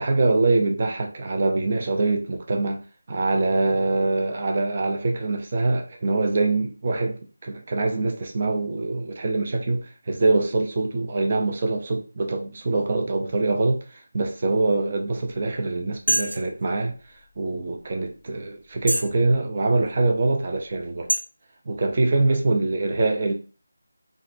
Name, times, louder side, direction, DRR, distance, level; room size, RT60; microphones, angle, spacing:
voice 1, 0.0-2.8 3.1-17.0 17.4-21.1 21.7-23.3, right 2 dB, 35° right, 0.4 m, -24 dB
sound 1, 16.1-16.5 17.2-17.3 17.9-18.0 18.8-19.2 19.7-19.8 20.5-20.7 21.1-21.2, right 1 dB, 60° right, 1.2 m, -24 dB
2.4 x 2.1 x 2.4 m
figure-of-eight pair, 170°, 0 cm